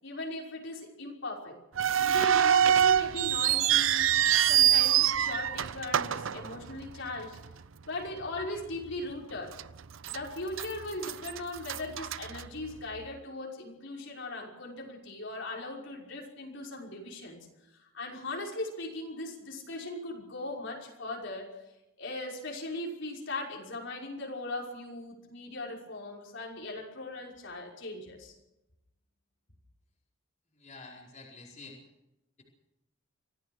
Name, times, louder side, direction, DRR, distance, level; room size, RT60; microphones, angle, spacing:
voice 1, 0.0-1.6 2.0-7.4 7.9-9.6 10.1-17.4 17.7-21.5 22.0-28.4, left 2 dB, 65° left, -1 dB, 5.7 m, -39 dB
sound 1, 1.8-7.1 7.4-7.5 8.2-8.4 8.9-9.0 9.6-10.2 10.5-13.0, right 10 dB, 75° right, 0.7 m, -25 dB
voice 2, 30.6-31.8, left 3 dB, 40° left, -2 dB, 4.8 m, -48 dB
25.5 x 17.0 x 6.4 m, 0.93 s
head